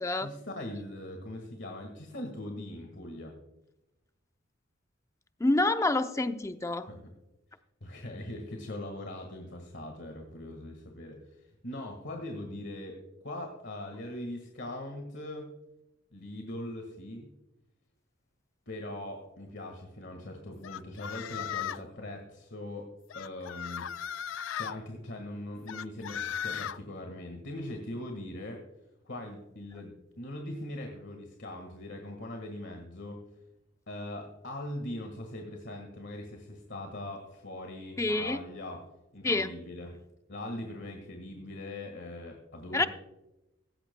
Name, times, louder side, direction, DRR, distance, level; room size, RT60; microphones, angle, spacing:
voice 1, 0.1-3.4 6.9-7.0 7.8-15.5 16.1-17.3 18.7-23.9 24.6-28.6 29.0-33.2 33.9-38.8 39.1-40.0 40.3-42.9, left 1 dB, 60° left, 3 dB, 1.7 m, -41 dB
voice 2, 5.4-6.9 38.0-38.4 39.2-39.5 42.7-42.9, left 2 dB, 15° left, 9 dB, 0.5 m, -27 dB
sound 1, 20.6-21.9 23.1-24.7 25.7-26.8, left 9 dB, 80° left, 0.4 m, -36 dB
16.0 x 16.0 x 2.2 m, 0.93 s
head